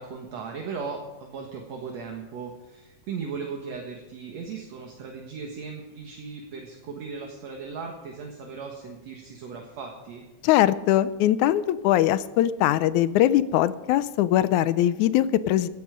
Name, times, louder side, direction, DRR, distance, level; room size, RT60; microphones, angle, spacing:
voice 1, 0.0-10.2, right 5 dB, 60° right, 1 dB, 2.6 m, -37 dB
voice 2, 10.4-15.7, left 12 dB, 80° left, 15 dB, 2.0 m, -21 dB
16.0 x 11.5 x 5.1 m, 1.1 s
omnidirectional pair, 3.6 m